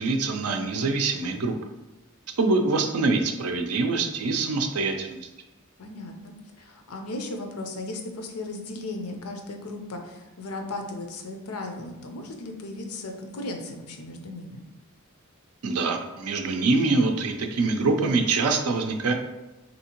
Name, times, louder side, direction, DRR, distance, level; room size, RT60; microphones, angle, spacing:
voice 1, 0.0-1.5 2.4-5.2 15.6-19.1, right 3 dB, 90° right, 5 dB, 0.5 m, -24 dB
voice 2, 5.8-14.6, left 2 dB, 80° left, 4 dB, 0.6 m, -36 dB
3.6 x 2.8 x 2.9 m, 1.1 s
head